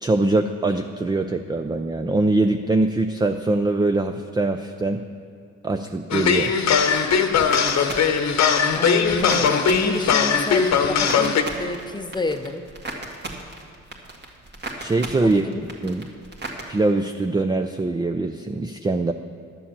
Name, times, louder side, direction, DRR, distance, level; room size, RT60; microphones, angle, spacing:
voice 1, 0.0-5.1 5.6-6.5 14.8-16.1 16.7-19.1, right 2 dB, 15° right, 7 dB, 0.4 m, -23 dB
sound 1, 6.1-11.4, left 6 dB, 65° left, 1.0 m, -20 dB
sound 2, 6.2-16.6, right 2 dB, 35° right, 1.8 m, -37 dB
voice 2, 8.7-12.6 15.2-15.6, left 2 dB, 15° left, 8 dB, 0.8 m, -29 dB
11.5 x 7.0 x 7.4 m, 2.4 s
cardioid pair, 90°, 30 cm